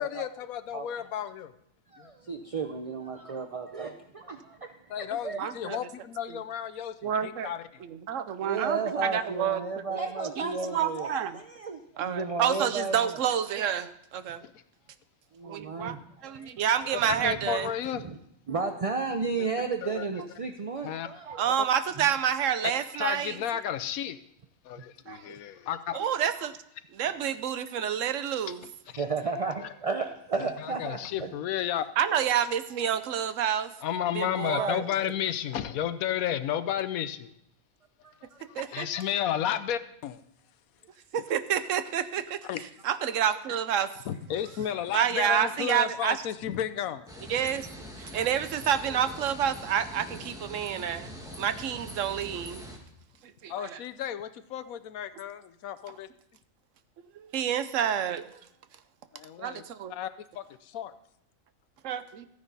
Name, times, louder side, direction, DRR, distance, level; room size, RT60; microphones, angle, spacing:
voice 1, 0.0-1.5 2.0-2.1 4.9-7.8 14.4-14.5 17.2-18.0 19.8-20.2 20.8-21.1 23.0-24.2 24.6-26.0 28.9-29.0 30.4-31.8 33.8-37.3 38.2-40.2 42.5-42.6 44.1-47.1 53.5-56.1 59.1-59.6 59.9-60.9, left 10 dB, 85° left, 12 dB, 1.1 m, -33 dB
voice 2, 1.9-4.9 5.2-5.4 8.4-13.2 15.3-16.5 17.1-17.3 17.9-18.2 18.5-22.0 28.9-31.3 34.6-35.1 38.0-38.4, right 4 dB, 45° right, 5 dB, 0.4 m, -33 dB
voice 3, 5.4-5.8 7.0-7.5 7.8-10.0 10.4-11.4 12.0-14.4 15.4-15.9 16.2-17.7 21.3-23.4 25.1-25.3 25.9-26.6 26.9-28.6 32.0-33.7 34.1-34.8 38.6-38.9 41.1-42.5 42.8-43.9 44.9-46.2 47.3-47.7 48.0-51.1 51.4-52.6 53.4-53.8 57.2-58.4 59.4-59.9 61.8-62.3, right 9 dB, 70° right, 12 dB, 1.0 m, -29 dB
sound 1, 47.1-52.8, equal, 5° right, 1.5 m, -43 dB
14.0 x 9.7 x 4.1 m, 0.75 s
omnidirectional pair, 1.4 m